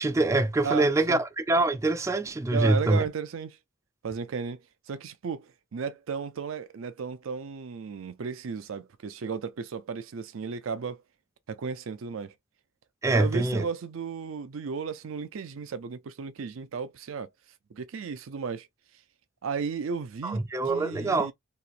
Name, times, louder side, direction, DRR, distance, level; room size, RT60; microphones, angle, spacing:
voice 1, 0.0-3.0 13.0-13.7 20.2-21.3, right 2 dB, 15° right, 0.3 m, -24 dB
voice 2, 0.6-1.2 2.5-3.6 4.0-4.6 4.9-11.0 11.5-12.3 13.1-17.3 17.7-18.7 19.4-21.3, right 5 dB, 85° right, 0.5 m, -34 dB
3.0 x 2.8 x 2.5 m
head